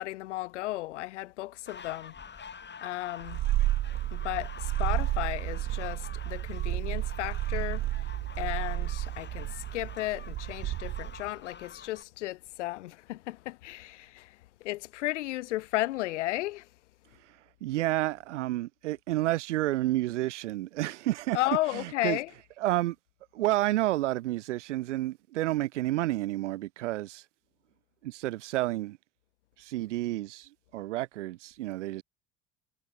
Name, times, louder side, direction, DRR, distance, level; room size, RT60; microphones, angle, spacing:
voice 1, 0.0-2.1 2.4-2.5 2.8-3.4 4.1-7.8 8.4-16.7 21.3-22.3, left 17 dB, 75° left, 3.4 m, -34 dB
sound 1, 1.7-12.0, left 6 dB, 30° left, 5.5 m, -47 dB
Purr, 3.2-11.3, right 15 dB, 45° right, 1.1 m, -31 dB
voice 2, 17.6-21.4 21.7-22.2 22.6-23.0 23.3-27.2 28.0-29.0 29.6-32.0, right 16 dB, 75° right, 2.1 m, -30 dB
hypercardioid pair, 65°, 36 cm